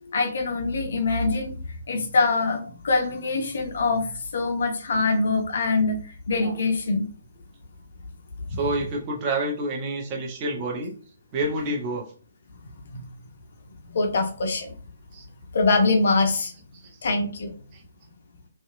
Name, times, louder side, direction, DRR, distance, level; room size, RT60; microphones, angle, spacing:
voice 1, 0.0-7.1 8.5-8.6 12.9-13.0 13.9-14.7 15.5-16.5 17.0-17.5, left 3 dB, 55° left, 4 dB, 0.5 m, -24 dB
voice 2, 8.6-10.9 11.3-12.0 15.1-15.2 16.8-16.9 17.7-17.8, right 2 dB, 25° right, -1 dB, 0.7 m, -28 dB
2.7 x 2.2 x 2.5 m, 0.41 s
figure-of-eight pair, 130°, 0 cm